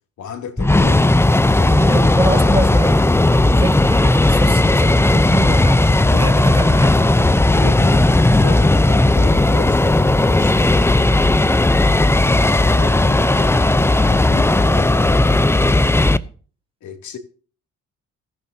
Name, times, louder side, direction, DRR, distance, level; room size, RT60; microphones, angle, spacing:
voice 1, 0.2-1.1 6.1-6.4 7.5-11.4 12.2-16.3 16.8-17.2, left 6 dB, 70° left, 2.7 m, -34 dB
sound 1, 0.6-16.2, left 2 dB, 10° left, 0.7 m, -15 dB
voice 2, 1.6-7.1, right 1 dB, 15° right, 3.6 m, -24 dB
16.0 x 14.5 x 2.8 m
cardioid pair, 90°, 30 cm